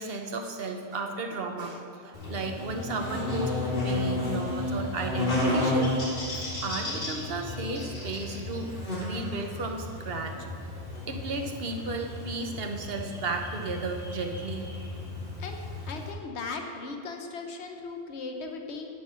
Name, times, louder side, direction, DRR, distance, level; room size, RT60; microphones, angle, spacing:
voice 1, 0.0-5.9 6.3-8.7 9.0-10.4 11.1-14.7, right 3 dB, 65° right, 4 dB, 1.2 m, -34 dB
Buzz, 2.1-16.1, left 2 dB, 55° left, 2.4 m, -32 dB
voice 2, 15.9-18.9, left 4 dB, 80° left, 4 dB, 1.2 m, -37 dB
9.4 x 6.3 x 6.4 m, 2.4 s
omnidirectional pair, 1.1 m